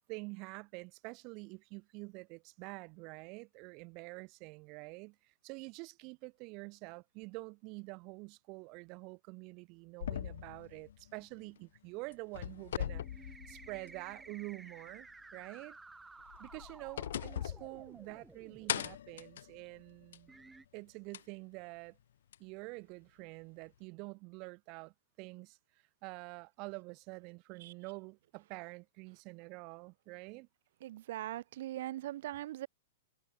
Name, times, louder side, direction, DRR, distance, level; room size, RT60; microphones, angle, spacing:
voice 1, 0.1-15.8 16.4-20.3 20.7-22.0 22.4-25.6 26.0-30.5, right 28 dB, 35° right, 7.0 m, -47 dB
sound 1, 10.0-11.8 12.1-14.1 14.5-14.6 16.2-18.3 18.7-20.4 21.1-21.2 22.3-22.4, left 10 dB, 70° left, 5.1 m, -41 dB
sound 2, 12.9-18.9 19.7-19.8 20.3-20.6, right 3 dB, 5° right, 3.7 m, -55 dB
voice 2, 30.8-32.7, right 14 dB, 60° right, 4.5 m, -40 dB
hypercardioid pair, 150°, 0 cm